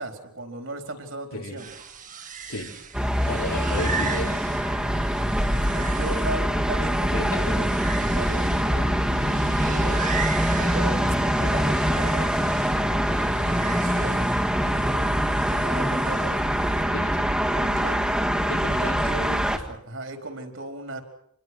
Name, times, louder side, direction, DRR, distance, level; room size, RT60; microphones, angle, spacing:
voice 1, 0.0-1.7 5.7-7.6 8.0-10.0 10.6-13.1 13.3-14.2 14.6-16.4 16.7-18.1 18.3-21.0, right 2 dB, 60° right, 4 dB, 4.4 m, -37 dB
voice 2, 1.3-1.6 2.5-2.8 3.3-4.6 6.0-6.2 7.1-7.6 16.9-17.3 18.5-19.0, left 2 dB, 90° left, 1 dB, 4.7 m, -33 dB
sound 1, 1.6-16.8, right 6 dB, 35° right, 2.0 m, -38 dB
sound 2, 2.9-19.6, equal, 5° right, 1.9 m, -24 dB
28.0 x 21.5 x 6.2 m, 0.73 s
head